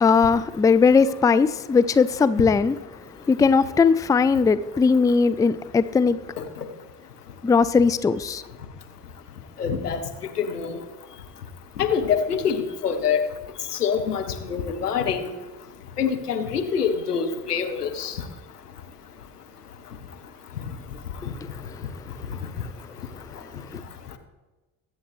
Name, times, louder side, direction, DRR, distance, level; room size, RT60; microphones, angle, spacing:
voice 1, 0.0-2.8 3.3-6.2 7.4-8.4 21.2-21.3 23.7-23.8, left 5 dB, 10° left, 0.4 m, -19 dB
voice 2, 9.6-10.0 10.4-10.8 11.8-13.3 13.8-15.3 16.0-18.1, left 7 dB, 90° left, 1.0 m, -25 dB
22.0 x 7.8 x 3.1 m
figure-of-eight pair, 50°, 45 cm